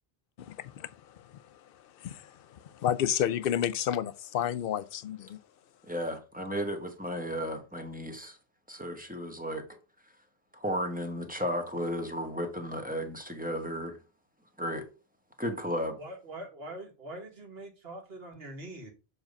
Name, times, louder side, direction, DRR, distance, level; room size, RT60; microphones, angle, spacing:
voice 1, 0.4-1.4 2.0-5.4, left 10 dB, 70° left, 0.7 m, -31 dB
voice 2, 5.8-8.4 8.7-9.6 10.5-14.0 14.6-14.9 15.4-16.0, equal, 10° right, 1.2 m, -34 dB
voice 3, 16.0-18.9, right 1 dB, 75° right, 1.6 m, -43 dB
7.2 x 3.2 x 5.2 m
omnidirectional pair, 1.0 m